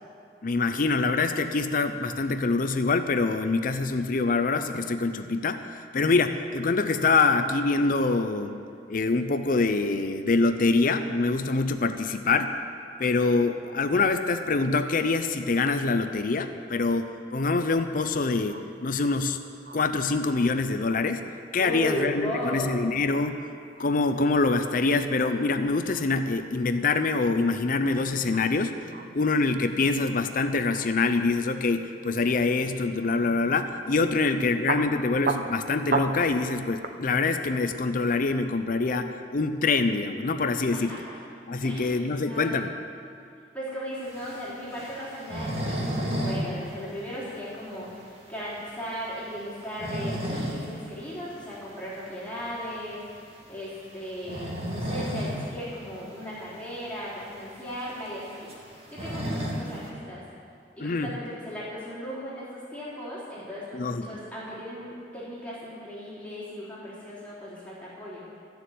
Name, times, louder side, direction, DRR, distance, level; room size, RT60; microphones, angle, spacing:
voice 1, 0.4-8.6 8.9-12.5 13.0-19.4 19.7-21.2 21.5-23.5 23.8-41.0 41.5-42.8 60.8-61.1 63.7-64.1, left 3 dB, 50° left, 8 dB, 0.6 m, -25 dB
sound 1, 17.9-18.1 18.5-18.6 19.0-19.1 19.7-19.8 20.3-20.5 20.9-21.1 21.6-23.2 23.6-24.2 24.5-24.8 25.2-25.3 25.8-26.7 27.4-28.1 28.3-28.4 28.8-29.1 30.0-30.1 30.7-30.8 33.7-33.8 34.2-34.4 34.7-34.8 35.1-36.4 36.8-36.9 37.2-37.8, right 3 dB, 50° right, 0.8 m, -34 dB
voice 2, 21.6-22.8 40.7-41.2 41.6-42.0 42.3-42.6 43.5-53.2 53.5-60.2 60.8-68.3, equal, 10° left, -10 dB, 3.9 m, -36 dB
sound 2, 44.1-46.4 46.7-46.8 47.2-47.3 47.8-47.9 49.5-50.6 51.0-51.2 52.7-52.9 54.1-55.4 55.8-55.9 56.1-56.2 56.9-57.0 57.3-59.9, equal, 35° right, 2.2 m, -32 dB
14.0 x 7.0 x 9.2 m, 2.4 s
head